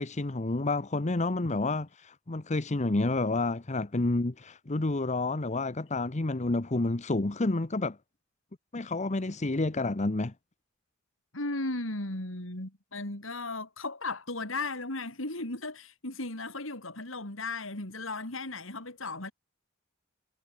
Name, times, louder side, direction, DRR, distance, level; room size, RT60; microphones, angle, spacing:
voice 1, 0.0-8.0 8.7-10.3, left 2 dB, 35° left, 0.9 m, -29 dB
voice 2, 11.3-19.3, left 2 dB, 70° left, 4.6 m, -36 dB
head